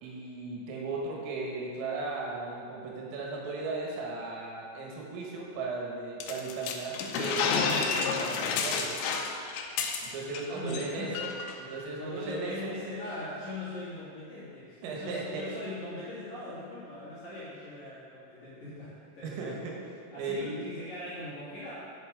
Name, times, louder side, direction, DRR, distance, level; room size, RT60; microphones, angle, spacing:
voice 1, 0.0-8.9 10.0-11.3 11.6-12.8 14.8-15.4 19.2-19.8 20.2-20.5, right 3 dB, 80° right, -2 dB, 4.1 m, -36 dB
sound 1, 6.2-10.4 10.7-10.9 11.2-11.5, left 5 dB, 80° left, 3.2 m, -30 dB
voice 2, 10.5-11.2 12.0-19.5 20.1-21.7, left 2 dB, 50° left, -11 dB, 2.6 m, -40 dB
10.5 x 6.6 x 5.0 m, 2.4 s
omnidirectional pair, 5.9 m